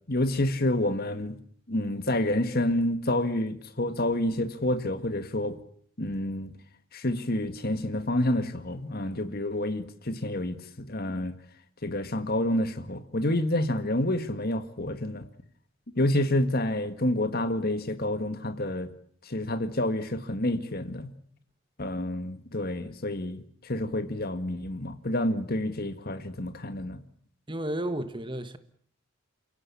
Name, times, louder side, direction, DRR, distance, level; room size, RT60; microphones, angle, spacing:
voice 1, 0.1-1.4 1.7-5.6 6.0-6.5 6.9-11.3 11.8-15.3 16.0-18.9 19.2-21.1 21.8-27.0, left 1 dB, 45° left, 1.8 m, -28 dB
voice 2, 27.5-28.6, right 1 dB, 20° right, 1.4 m, -32 dB
29.5 x 17.0 x 8.6 m
head